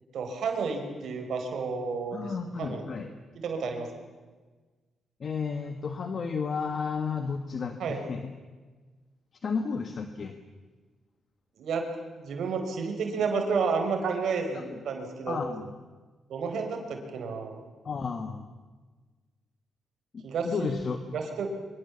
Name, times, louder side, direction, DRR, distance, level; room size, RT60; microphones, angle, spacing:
voice 1, 0.1-2.3 2.6-2.8 3.3-3.9 7.8-8.0 11.6-11.9 12.2-15.4 16.3-17.6 20.2-20.7 21.1-21.6, right 5 dB, 75° right, 4 dB, 4.5 m, -31 dB
voice 2, 2.1-3.1 5.2-8.3 9.4-10.3 14.5-14.8 15.3-15.7 17.8-18.5 20.1-21.0, left 5 dB, 50° left, 7 dB, 1.8 m, -32 dB
25.0 x 24.5 x 7.3 m, 1.3 s
cardioid pair, 90°, 0 cm